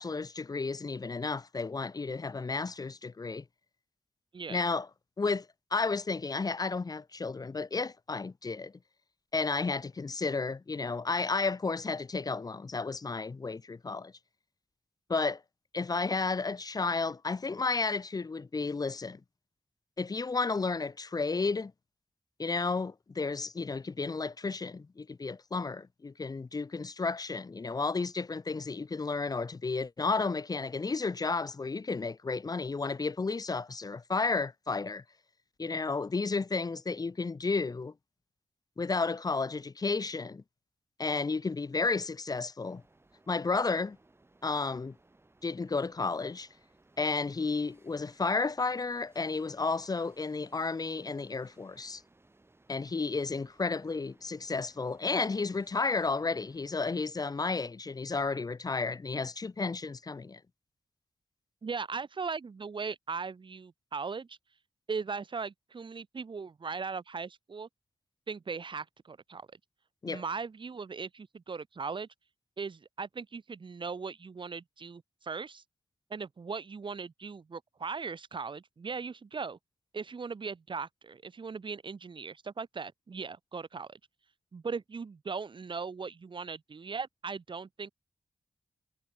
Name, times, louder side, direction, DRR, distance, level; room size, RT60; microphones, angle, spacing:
voice 1, 0.0-3.4 4.5-4.9 5.2-5.5 5.7-8.7 9.3-14.1 15.1-15.4 15.7-19.2 20.0-21.7 22.4-35.0 35.6-37.9 38.8-40.4 41.0-42.8 43.3-44.0 44.4-44.9 45.4-46.5 47.0-52.0 52.7-60.4 70.0-70.2, left 4 dB, 40° left, 1.2 m, -32 dB
sound 1, 42.6-56.8, right 2 dB, 25° right, 7.7 m, -64 dB
voice 2, 61.6-64.4 64.9-67.7 68.3-69.5 70.1-72.1 72.6-75.6 76.1-79.6 79.9-84.0 84.5-87.9, right 5 dB, 55° right, 3.4 m, -38 dB
wide cardioid pair, 85°, 10 cm